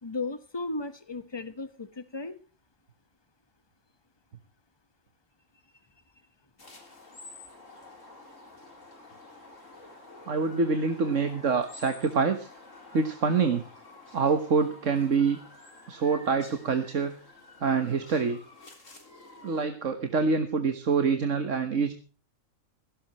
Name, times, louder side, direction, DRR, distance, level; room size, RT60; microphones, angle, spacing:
voice 1, 0.0-2.4, left 3 dB, 20° left, 12 dB, 1.4 m, -35 dB
sound 1, 6.6-19.7, left 2 dB, 75° left, 4.1 m, -50 dB
voice 2, 10.3-12.5 12.9-13.6 14.1-15.4 15.9-17.2 17.6-18.4 19.4-21.9, right 5 dB, 70° right, 8 dB, 1.7 m, -26 dB
17.5 x 16.5 x 3.1 m, 0.35 s
omnidirectional pair, 1.4 m